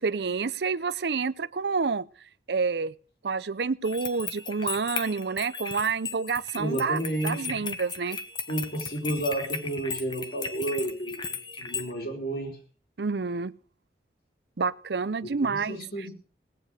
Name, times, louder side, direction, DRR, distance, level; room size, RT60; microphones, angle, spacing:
voice 1, 0.0-2.1 2.5-2.9 3.2-8.2 13.0-13.5 14.6-15.8, right 5 dB, 75° right, 16 dB, 0.6 m, -28 dB
sound 1, 3.8-11.9, left 5 dB, 25° left, 1.2 m, -36 dB
voice 2, 6.6-7.7 8.5-12.6 15.2-16.1, right 1 dB, 55° left, 2 dB, 4.7 m, -32 dB
18.0 x 9.3 x 6.5 m, 0.41 s
head